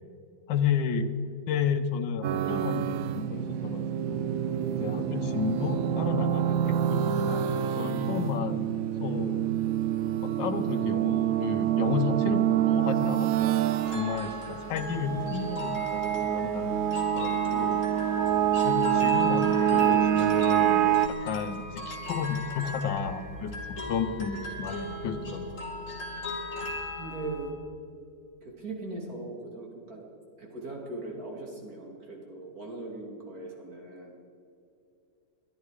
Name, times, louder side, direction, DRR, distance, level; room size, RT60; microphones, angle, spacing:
voice 1, 0.5-1.1 1.5-4.4 4.7-7.5 7.8-8.7 9.0-9.4 10.2-13.3 13.9-16.7 17.1-17.8 18.6-23.5 23.9-25.6, left 6 dB, 80° left, 8 dB, 1.6 m, -32 dB
sound 1, 2.2-21.1, right 10 dB, 80° right, 0.7 m, -27 dB
sound 2, 13.8-27.5, left 2 dB, 45° left, 3.0 m, -37 dB
voice 2, 27.0-27.6 28.4-30.0 30.4-34.1, right 2 dB, 50° right, -1 dB, 3.0 m, -39 dB
21.5 x 12.0 x 4.9 m, 2.5 s
omnidirectional pair, 2.0 m